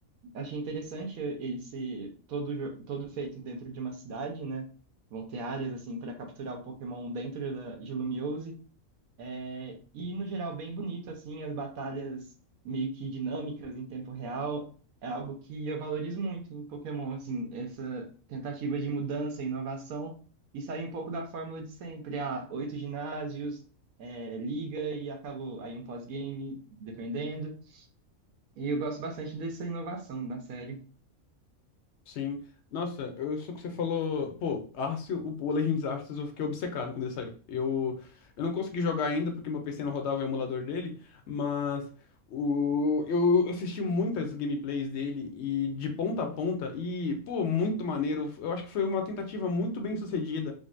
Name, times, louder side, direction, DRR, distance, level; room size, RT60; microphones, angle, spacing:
voice 1, 0.3-4.7 5.1-8.6 9.2-12.3 12.6-14.7 15.0-20.2 20.5-23.6 24.0-27.9 28.6-30.8, right 3 dB, 80° right, 3 dB, 1.2 m, -36 dB
voice 2, 32.1-32.4 32.7-38.0 38.4-41.9 42.3-50.5, left 4 dB, 65° left, 5 dB, 0.7 m, -30 dB
3.8 x 2.1 x 2.4 m, 0.40 s
omnidirectional pair, 1.5 m